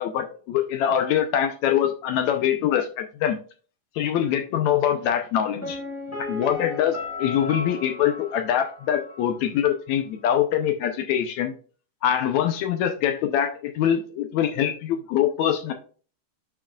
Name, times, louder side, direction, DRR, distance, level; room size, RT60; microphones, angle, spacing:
voice 1, 0.0-3.4 4.0-5.8 6.3-11.5 12.0-15.7, left 10 dB, 75° left, 6 dB, 1.8 m, -24 dB
Piano, 5.6-9.4 9.6-9.7, left 3 dB, 5° left, 1.5 m, -35 dB
11.5 x 4.6 x 2.3 m, 0.40 s
omnidirectional pair, 3.6 m